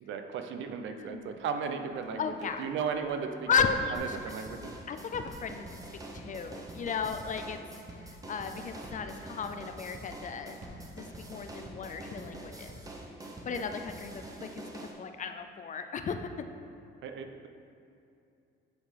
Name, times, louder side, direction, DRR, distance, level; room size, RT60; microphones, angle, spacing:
voice 1, 0.0-2.3 2.6-3.5 3.9-4.7 13.5-13.7 17.0-17.5, right 6 dB, 70° right, 6 dB, 0.6 m, -36 dB
sound 1, 0.6-11.5, right 1 dB, 35° right, 1.3 m, -56 dB
voice 2, 0.9-1.4 2.2-2.6 3.5-4.2 4.9-5.8 6.1-7.6 7.9-10.6 11.0-12.8 13.4-14.6 15.0-16.3, left 6 dB, 40° left, 8 dB, 0.5 m, -34 dB
sound 2, 3.9-14.9, right 1 dB, 15° right, 0.9 m, -45 dB
8.3 x 3.9 x 4.7 m, 2.6 s
cardioid pair, 105°, 20 cm